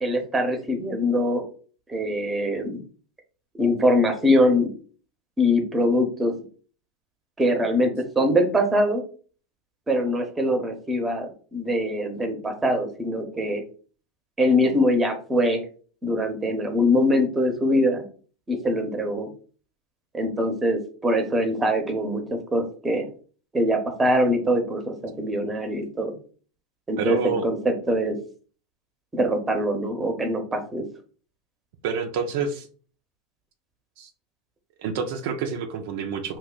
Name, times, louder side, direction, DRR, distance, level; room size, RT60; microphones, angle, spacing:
voice 1, 0.0-1.4 1.9-2.8 3.6-4.7 5.4-6.3 7.4-9.0 9.9-13.6 14.4-15.6 16.0-18.0 18.5-19.3 20.1-23.1 23.5-26.1 26.9-28.2 29.1-30.8, equal, 15° right, 5 dB, 0.7 m, -23 dB
voice 2, 27.0-27.4 31.8-32.7 34.0-34.1 34.8-36.4, right 5 dB, 65° right, 5 dB, 0.4 m, -28 dB
2.7 x 2.1 x 3.8 m, 0.41 s
hypercardioid pair, 100°, 0 cm